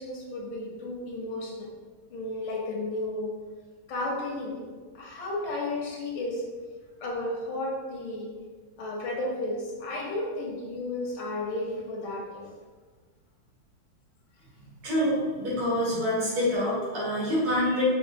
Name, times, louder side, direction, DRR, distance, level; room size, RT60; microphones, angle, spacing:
voice 1, 0.0-1.7 2.1-3.3 3.9-4.7 4.9-6.4 7.0-8.3 8.8-12.5, left 2 dB, 80° left, -2 dB, 1.6 m, -33 dB
voice 2, 14.8-17.8, equal, 85° right, -8 dB, 2.4 m, -26 dB
5.2 x 2.5 x 2.6 m, 1.4 s
omnidirectional pair, 2.3 m